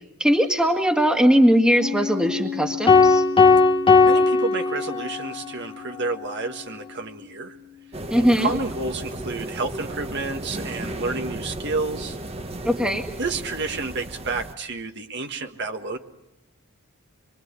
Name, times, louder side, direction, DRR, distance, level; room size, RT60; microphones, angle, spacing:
voice 1, 0.2-3.2 8.1-8.5 12.7-13.1, equal, 5° right, 4 dB, 1.9 m, -20 dB
Piano, 1.8-9.0, left 9 dB, 70° right, 3.0 m, -36 dB
sound 1, 2.9-5.3, left 4 dB, 25° left, 1.1 m, -17 dB
voice 2, 4.0-7.6 8.1-12.2 13.2-16.0, right 3 dB, 50° right, 5 dB, 1.7 m, -30 dB
sound 2, 7.9-14.5, right 1 dB, 25° right, 1.3 m, -34 dB
25.5 x 24.0 x 8.3 m, 0.89 s
head